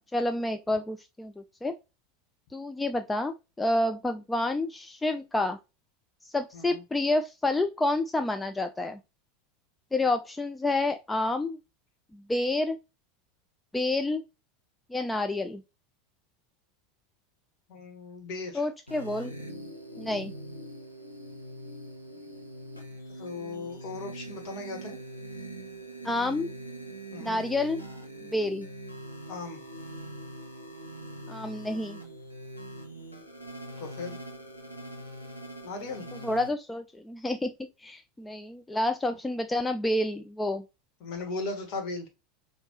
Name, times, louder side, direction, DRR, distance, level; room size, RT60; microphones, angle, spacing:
voice 1, 0.0-1.8 2.5-5.6 6.2-9.0 9.9-11.6 12.1-12.8 13.7-14.2 14.9-15.6 18.5-19.3 20.0-20.3 26.0-26.5 27.2-27.8 28.2-28.7 31.3-32.0 36.2-37.5 37.8-40.6, left 2 dB, 10° left, 0.4 m, -29 dB
voice 2, 17.7-18.7 23.1-25.0 27.1-27.4 29.3-29.6 33.8-34.2 35.6-36.1 41.0-42.1, left 3 dB, 50° left, 1.6 m, -37 dB
sound 1, 18.9-36.5, right 1 dB, 85° left, 0.9 m, -42 dB
5.2 x 2.7 x 3.1 m
figure-of-eight pair, 80°, 0 cm